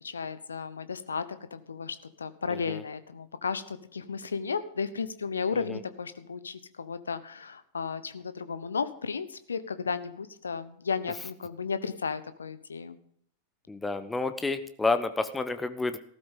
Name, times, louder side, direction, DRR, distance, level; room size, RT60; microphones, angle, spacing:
voice 1, 0.0-1.2 1.5-13.0, left 5 dB, 70° left, 14 dB, 0.9 m, -34 dB
voice 2, 13.7-16.0, left 3 dB, 10° left, 11 dB, 0.9 m, -30 dB
15.5 x 13.0 x 3.8 m, 0.67 s
figure-of-eight pair, 90°, 0 cm